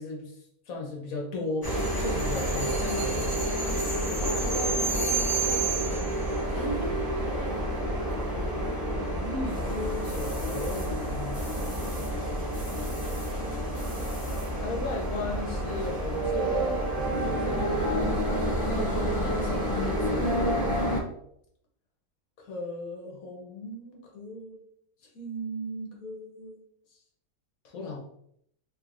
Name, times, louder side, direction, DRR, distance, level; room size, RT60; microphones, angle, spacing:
voice 1, 0.0-3.4 9.0-14.0 14.6-17.7 22.4-24.6 25.0-26.6 26.9-27.0 27.6-28.0, left 2 dB, 65° left, -1 dB, 1.2 m, -37 dB
sound 1, 1.6-21.0, right 1 dB, 20° left, 0.6 m, -29 dB
voice 2, 4.2-6.2 6.5-7.0 7.4-7.6 18.6-20.3, right 1 dB, 60° right, -5 dB, 1.9 m, -37 dB
3.5 x 3.1 x 2.5 m, 0.70 s
omnidirectional pair, 1.6 m